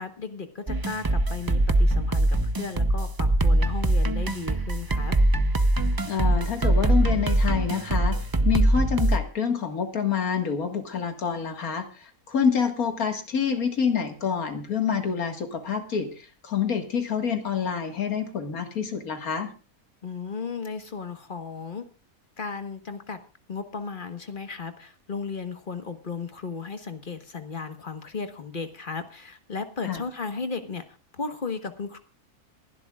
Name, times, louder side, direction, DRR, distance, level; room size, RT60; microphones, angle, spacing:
voice 1, 0.0-5.2 20.0-21.8 22.4-23.2 23.5-30.8 31.1-32.0, left 4 dB, 35° left, 9 dB, 1.5 m, -35 dB
sound 1, 0.7-9.2, right 1 dB, 25° right, 0.5 m, -22 dB
voice 2, 6.0-8.2 8.4-19.5 29.8-30.0, left 6 dB, 85° left, 7 dB, 2.3 m, -27 dB
27.5 x 11.5 x 2.4 m, 0.33 s
omnidirectional pair, 1.5 m